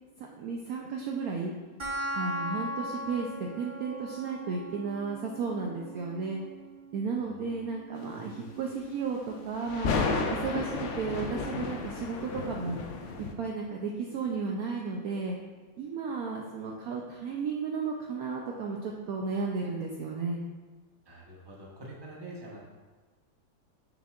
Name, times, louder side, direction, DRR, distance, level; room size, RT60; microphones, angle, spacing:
voice 1, 0.2-1.5 2.2-6.4 6.9-10.0 10.3-12.8 13.2-15.4 15.8-20.4, right 4 dB, 70° right, -1 dB, 0.9 m, -34 dB
sound 1, 1.8-12.8, equal, 50° right, 0.3 m, -41 dB
voice 2, 7.2-7.6 8.1-8.5 21.1-22.6, right 1 dB, 15° right, -4 dB, 0.9 m, -46 dB
sound 2, 9.6-13.3, left 4 dB, 90° left, 0.6 m, -32 dB
6.9 x 6.4 x 2.4 m, 1.3 s
omnidirectional pair, 2.0 m